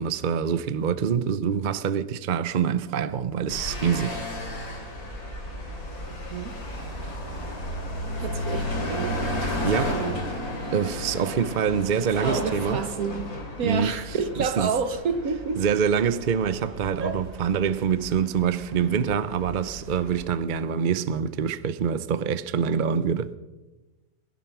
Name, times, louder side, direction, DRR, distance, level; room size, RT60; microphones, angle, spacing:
voice 1, 0.0-4.2 4.7-4.8 9.4-10.0 10.7-12.8 13.6-13.9 14.4-14.7 15.6-23.4, right 7 dB, 50° right, 0.6 m, -25 dB
sound 1, 3.5-20.2, left 1 dB, 80° left, 3.5 m, -34 dB
voice 2, 6.0-6.6 8.2-9.2 9.6-10.2 12.1-13.3 13.6-15.6 17.0-17.2, right 5 dB, 70° right, 1.6 m, -29 dB
20.5 x 11.5 x 6.0 m
omnidirectional pair, 1.6 m